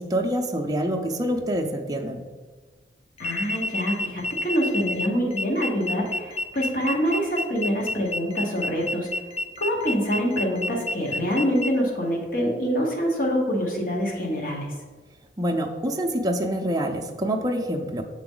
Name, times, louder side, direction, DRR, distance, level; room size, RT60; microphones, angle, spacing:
voice 1, 0.0-2.2 15.4-18.0, equal, 20° right, 1 dB, 0.5 m, -26 dB
voice 2, 3.2-9.1 9.6-14.7, equal, 50° left, -1 dB, 1.3 m, -25 dB
sound 1, 3.2-11.7, left 2 dB, 35° left, 0.3 m, -30 dB
6.8 x 4.0 x 3.8 m, 1.3 s
head